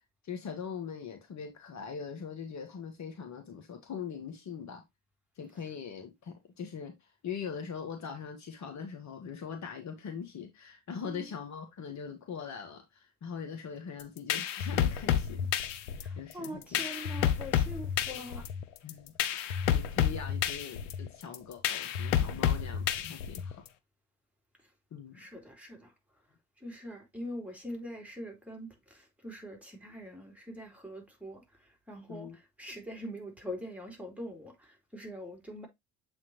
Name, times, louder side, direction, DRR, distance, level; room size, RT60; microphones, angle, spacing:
voice 1, 0.2-4.8 5.4-16.8 18.8-23.6 24.9-25.2 32.1-32.4, left 6 dB, 50° left, 1.7 m, -42 dB
sound 1, 14.0-23.7, left 9 dB, 80° left, 0.8 m, -30 dB
voice 2, 16.0-18.5 25.1-25.9 26.6-35.7, equal, 5° right, 3.6 m, -43 dB
7.6 x 4.3 x 3.0 m
hypercardioid pair, 60°, 37 cm